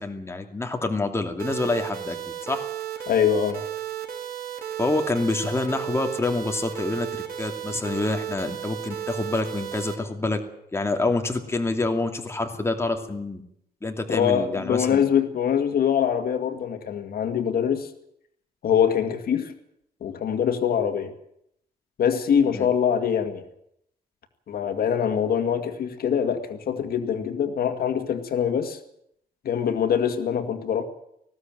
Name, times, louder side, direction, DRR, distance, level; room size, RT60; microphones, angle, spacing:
voice 1, 0.0-2.2 2.4-2.6 4.8-10.4 10.7-13.4 13.8-15.0 22.5-22.7, left 2 dB, 15° left, 4 dB, 2.5 m, -27 dB
sound 1, 1.4-9.9, right 10 dB, 70° right, 3.9 m, -34 dB
voice 2, 3.1-3.6 14.1-17.9 18.6-19.5 20.0-21.1 22.0-23.4 24.5-28.8 29.4-30.8, left 8 dB, 70° left, 7 dB, 2.1 m, -23 dB
19.5 x 15.0 x 9.2 m, 0.76 s
cardioid pair, 115°, 16 cm